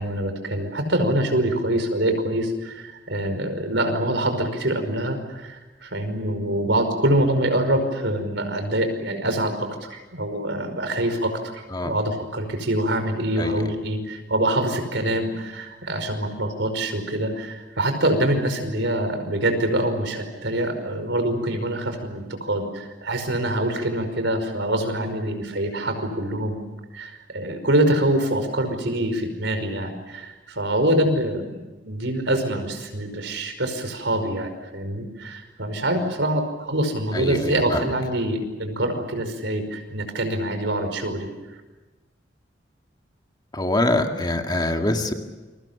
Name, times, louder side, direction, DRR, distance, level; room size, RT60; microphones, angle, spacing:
voice 1, 0.0-26.6 26.9-41.3, right 1 dB, 70° right, 7 dB, 5.3 m, -25 dB
voice 2, 37.1-37.9 43.5-45.1, left 1 dB, 25° left, 4 dB, 2.0 m, -24 dB
29.0 x 23.5 x 7.1 m, 1.2 s
head